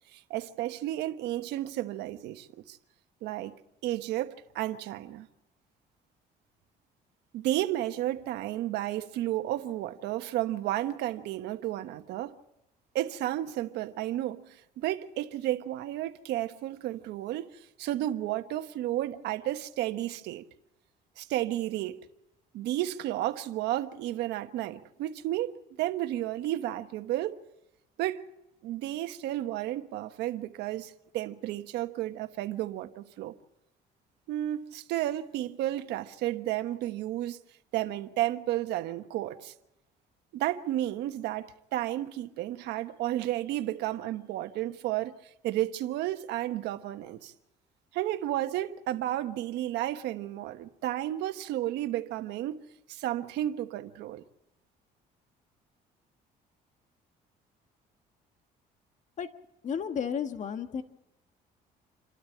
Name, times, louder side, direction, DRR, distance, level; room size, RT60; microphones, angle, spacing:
voice 1, 0.1-2.8 3.2-3.5 3.8-5.3 7.3-12.3 12.9-17.5 17.8-20.4 21.2-22.0 22.5-27.4 28.0-28.2 28.6-33.3 34.3-37.4 37.7-39.5 40.3-45.1 45.4-47.3 47.9-52.6 52.9-54.2, right 14 dB, 85° right, 1.3 m, -32 dB
voice 2, 59.6-60.8, left 7 dB, 45° left, 1.5 m, -32 dB
28.0 x 12.5 x 8.6 m
cardioid pair, 110°, 17 cm